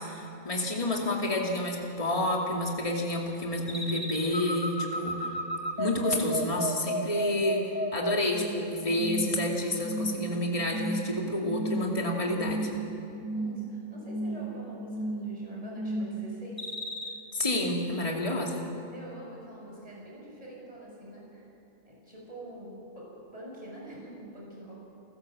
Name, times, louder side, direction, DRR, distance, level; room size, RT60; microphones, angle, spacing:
voice 1, 0.0-5.4 5.8-7.6 7.9-12.7 17.3-18.7, left 1 dB, 25° left, 0 dB, 2.6 m, -29 dB
sound 1, 3.7-8.6 9.0-9.5 9.8-10.3 10.7-11.1 11.5-12.1 12.4-12.9 13.2-13.7 14.0-14.5 14.9-15.4 15.8-16.2 16.6-17.1, right 1 dB, 10° right, 2.2 m, -33 dB
voice 2, 13.3-16.7 17.0-17.1 18.8-21.5 21.8-24.7, equal, 25° right, -4 dB, 6.8 m, -45 dB
29.5 x 14.5 x 7.6 m, 2.8 s
omnidirectional pair, 1.4 m